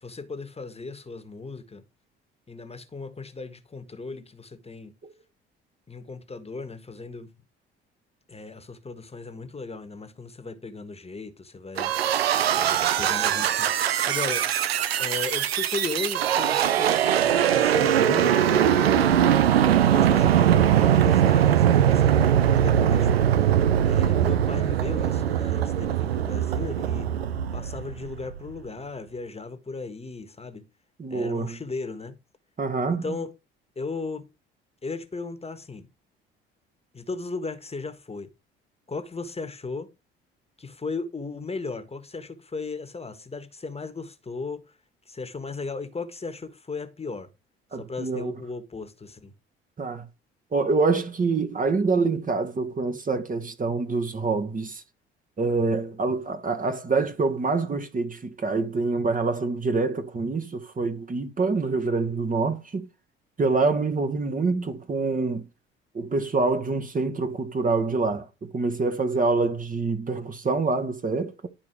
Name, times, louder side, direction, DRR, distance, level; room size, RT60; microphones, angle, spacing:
voice 1, 0.0-1.8 2.5-4.9 5.9-7.3 8.3-11.9 12.5-14.5 15.0-19.2 19.9-23.3 23.8-27.1 27.5-30.7 31.1-32.2 32.9-33.3 33.7-34.3 34.8-35.9 36.9-38.3 38.9-39.9 40.6-44.8 45.1-47.3 47.7-49.3, left 4 dB, 20° left, 1.6 m, -36 dB
sound 1, 11.8-28.4, right 10 dB, 85° right, 0.6 m, -21 dB
voice 2, 31.0-31.6 32.6-33.2 47.7-48.3 49.8-50.1 50.5-54.8 55.4-62.9 63.4-65.5 65.9-71.5, right 3 dB, 25° right, 1.5 m, -26 dB
11.5 x 4.8 x 4.8 m
figure-of-eight pair, 55°, 30 cm